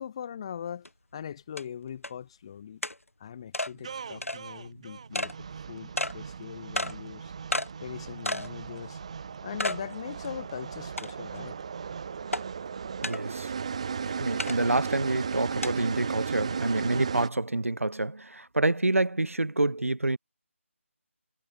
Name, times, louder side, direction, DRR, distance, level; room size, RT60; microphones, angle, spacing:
voice 1, 0.0-2.8 3.2-7.3 7.8-9.0 9.4-11.6, left 8 dB, 25° left, 1.4 m, -41 dB
sound 1, 0.9-1.0 1.6-1.7 2.0-2.1 2.8-3.0 3.5-3.7 4.2-4.4 5.1-5.3 6.0-6.1 6.8-6.9 7.5-7.7 8.3-8.5 8.9-9.0 9.6-9.8 10.2-10.3 11.0-11.4 12.3-12.4 13.0-13.2 14.4-14.6 15.6-15.7, left 1 dB, 80° left, 1.0 m, -31 dB
sound 2, 3.7-15.5, right 3 dB, 50° right, 4.7 m, -54 dB
sound 3, 3.8-17.3, right 6 dB, 25° right, 0.6 m, -36 dB
voice 2, 13.0-13.5 14.0-20.2, right 2 dB, 75° right, 0.7 m, -27 dB
figure-of-eight pair, 155°, 7 cm